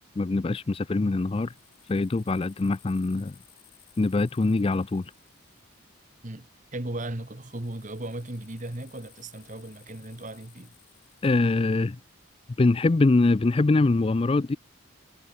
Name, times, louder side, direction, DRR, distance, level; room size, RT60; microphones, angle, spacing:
voice 1, 0.2-1.5 1.9-3.4 4.0-5.1 11.2-12.0 12.6-14.6, left 3 dB, 25° left, 0.4 m, -23 dB
sound 1, 1.0-6.6 7.1-12.5, left 18 dB, 80° left, 6.7 m, -60 dB
voice 2, 6.2-10.8, right 1 dB, 35° right, 1.5 m, -37 dB
head